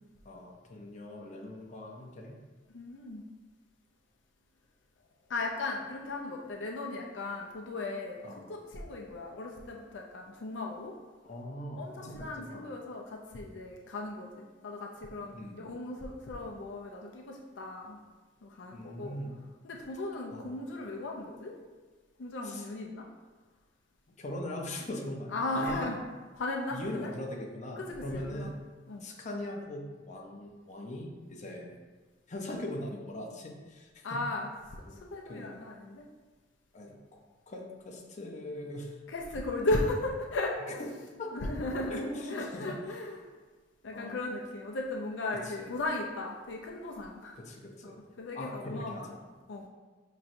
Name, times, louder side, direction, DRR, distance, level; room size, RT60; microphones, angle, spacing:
voice 1, 0.2-2.4 8.2-8.4 11.2-12.7 15.3-15.6 18.7-19.4 20.3-20.6 22.4-22.7 24.2-25.9 26.7-28.5 29.0-31.8 32.3-34.2 34.9-35.0 35.2-35.6 36.7-37.0 37.5-39.0 41.2-41.3 41.9-42.7 43.9-44.2 45.4-45.7 47.3-48.0 48.3-49.2, left 1 dB, 40° left, 0 dB, 0.6 m, -40 dB
voice 2, 2.7-3.2 5.3-10.9 11.8-18.0 18.4-19.2 19.6-21.6 22.2-23.1 25.3-26.0 26.3-27.1 27.8-28.5 28.9-29.0 34.0-34.5 35.1-36.1 39.1-40.8 41.3-43.2 43.8-47.4 47.8-49.1 49.5-49.7, left 2 dB, 85° left, 0 dB, 0.5 m, -36 dB
5.6 x 3.1 x 2.6 m, 1.3 s
head